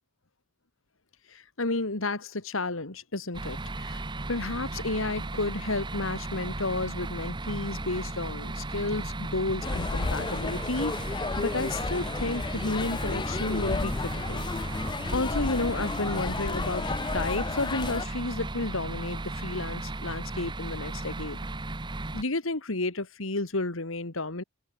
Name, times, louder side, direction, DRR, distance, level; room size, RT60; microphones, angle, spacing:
voice 1, 1.3-4.0 4.3-14.4 15.1-21.4 22.1-24.4, left 2 dB, 85° left, 2.3 m, -32 dB
sound 1, 3.3-22.2, right 2 dB, 20° right, 0.9 m, -36 dB
sound 2, 9.6-18.1, left 3 dB, 20° left, 0.4 m, -32 dB
open air
head